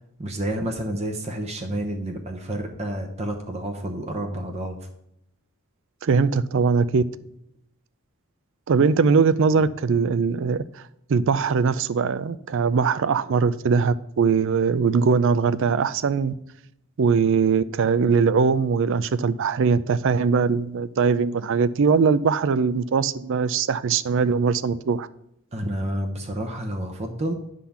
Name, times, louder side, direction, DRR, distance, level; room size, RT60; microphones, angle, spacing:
voice 1, 0.2-4.9 25.5-27.3, right 1 dB, 30° right, 0.9 m, -29 dB
voice 2, 6.0-7.0 8.7-10.8 11.1-16.3 17.0-25.1, right 5 dB, 60° right, 0.4 m, -21 dB
10.0 x 3.8 x 7.0 m
head